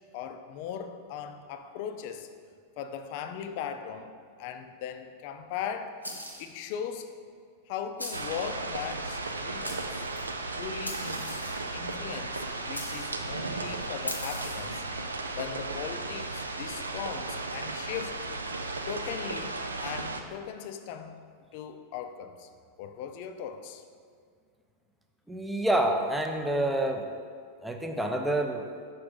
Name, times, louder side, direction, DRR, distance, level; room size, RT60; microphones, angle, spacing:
voice 1, 0.1-2.3 2.8-6.0 6.4-7.1 7.7-10.0 10.5-11.4 11.7-14.9 15.3-18.2 18.9-21.2 21.5-22.5 22.8-23.8, left 8 dB, 45° left, 8 dB, 0.4 m, -39 dB
sound 1, 6.0-6.6 8.0-8.4 9.2-9.3 9.6-10.3 10.8-11.7 12.7-13.2 14.1-14.7, left 1 dB, 85° left, 0.7 m, -39 dB
sound 2, 8.1-20.2, right 3 dB, 75° right, 0.4 m, -35 dB
voice 2, 25.3-27.1 27.6-28.7, right 1 dB, 5° right, 4 dB, 0.5 m, -28 dB
5.8 x 3.6 x 5.3 m, 2.1 s
figure-of-eight pair, 90°, 0 cm